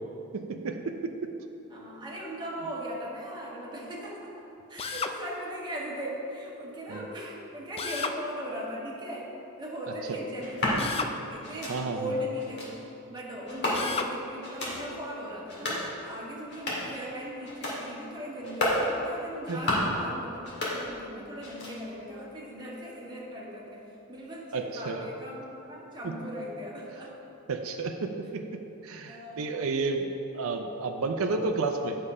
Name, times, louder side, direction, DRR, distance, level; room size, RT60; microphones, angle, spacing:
voice 1, 0.3-1.1 6.9-7.1 10.1-10.2 11.7-12.1 19.5-19.6 24.5-25.0 26.0-26.1 27.5-28.4 28.8-32.0, right 3 dB, 70° right, 4 dB, 0.5 m, -31 dB
voice 2, 1.7-4.3 4.7-12.7 13.1-27.1 29.1-29.5, equal, 20° right, -4 dB, 1.4 m, -38 dB
Drill, 4.8-5.2 7.8-8.2 10.8-11.2 13.7-14.1, left 5 dB, 25° left, 0.3 m, -32 dB
sound 1, 10.4-10.8 11.4-11.8 12.4-12.7 13.5-14.1 14.4-14.8 15.4-15.9 16.4-17.0 17.4-17.8 18.4-18.8 19.4-20.0 20.4-21.1 21.4-22.0, left 1 dB, 55° left, 1.9 m, -31 dB
8.6 x 5.5 x 4.9 m, 2.9 s
head